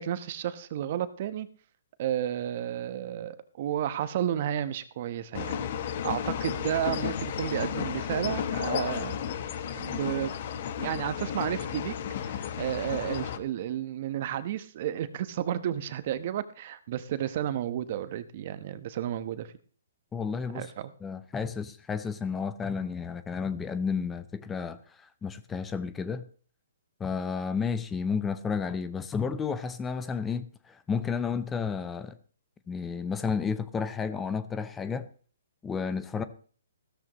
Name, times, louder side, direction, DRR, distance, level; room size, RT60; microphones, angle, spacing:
voice 1, 0.0-1.5 2.0-5.6 6.0-9.2 9.7-10.3 10.8-11.9 12.2-19.5 20.5-20.9, right 11 dB, 45° right, 1.0 m, -32 dB
sound 1, 5.3-13.4, left 8 dB, 50° left, 1.2 m, -33 dB
voice 2, 20.1-20.7 21.0-26.2 27.0-32.2 32.7-35.1 35.6-36.2, left 5 dB, 10° left, 0.6 m, -32 dB
15.0 x 13.5 x 3.1 m
hypercardioid pair, 145°, 0 cm